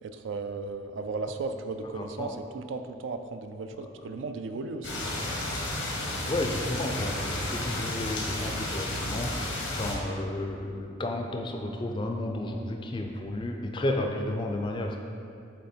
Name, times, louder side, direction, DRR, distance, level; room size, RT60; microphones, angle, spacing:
voice 1, 0.0-5.1, right 3 dB, 75° right, 8 dB, 0.4 m, -35 dB
voice 2, 1.8-2.3 5.2-5.4 6.3-9.4 9.8-15.0, left 1 dB, 25° left, 3 dB, 0.4 m, -32 dB
sound 1, 4.8-9.9, left 1 dB, 85° left, 1.1 m, -32 dB
7.3 x 3.3 x 4.4 m, 2.5 s
head